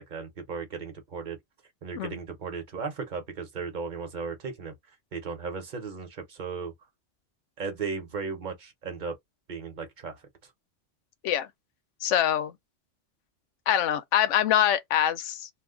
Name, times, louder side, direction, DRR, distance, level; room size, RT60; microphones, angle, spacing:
voice 1, 0.1-1.4 1.8-4.7 5.1-6.7 7.6-9.2 9.5-10.2, right 5 dB, 45° right, 0.9 m, -36 dB
voice 2, 12.0-12.5 13.7-15.5, left 11 dB, 85° left, 0.9 m, -24 dB
2.5 x 2.3 x 3.6 m
omnidirectional pair, 1.2 m